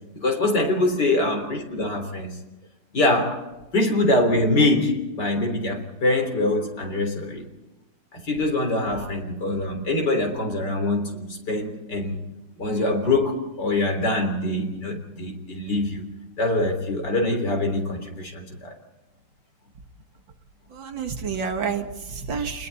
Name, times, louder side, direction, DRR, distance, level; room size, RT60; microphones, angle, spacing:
voice 1, 0.1-2.4 2.9-3.5 3.7-7.4 8.1-12.2 12.6-16.0 16.4-18.7, left 2 dB, 55° left, 4.3 m, -24 dB
voice 2, 20.7-22.7, right 6 dB, 70° right, 2.4 m, -29 dB
30.0 x 21.0 x 4.2 m
omnidirectional pair, 2.1 m